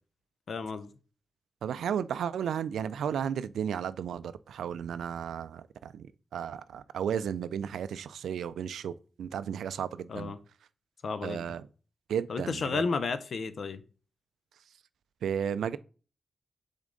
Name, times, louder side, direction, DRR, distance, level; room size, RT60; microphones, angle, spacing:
voice 1, 0.5-0.9 10.1-10.4 11.0-11.5 12.3-13.8, left 4 dB, 70° left, 0.6 m, -32 dB
voice 2, 1.6-10.3 11.2-11.6 12.1-12.8 15.2-15.8, right 8 dB, 90° right, 0.3 m, -34 dB
7.2 x 3.6 x 3.8 m
cardioid pair, 55°, 0 cm